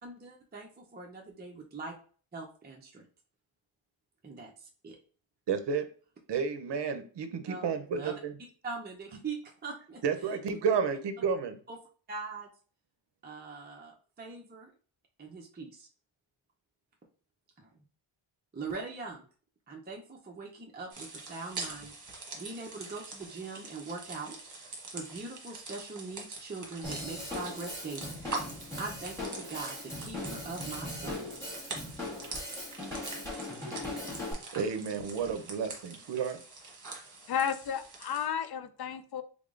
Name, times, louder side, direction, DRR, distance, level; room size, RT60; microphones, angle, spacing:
voice 1, 0.0-1.9 2.3-3.0 4.2-5.0 7.5-8.1 8.6-10.0 11.7-11.8 12.1-12.5 13.2-14.7 15.2-15.9 17.6-17.7 18.5-19.2 19.7-24.4 24.9-28.1 28.8-31.2 32.3-32.4, right 4 dB, 20° right, 0.6 m, -42 dB
voice 2, 5.5-5.8 6.3-8.3 10.0-11.6 34.5-36.4, right 6 dB, 60° right, 0.7 m, -31 dB
sound 1, 20.9-38.3, right 3 dB, 40° right, 1.1 m, -44 dB
Drum kit / Drum, 26.8-34.3, left 1 dB, 5° left, 1.7 m, -39 dB
voice 3, 37.3-39.2, left 8 dB, 50° left, 0.5 m, -32 dB
3.5 x 3.5 x 2.5 m
wide cardioid pair, 105°, 49 cm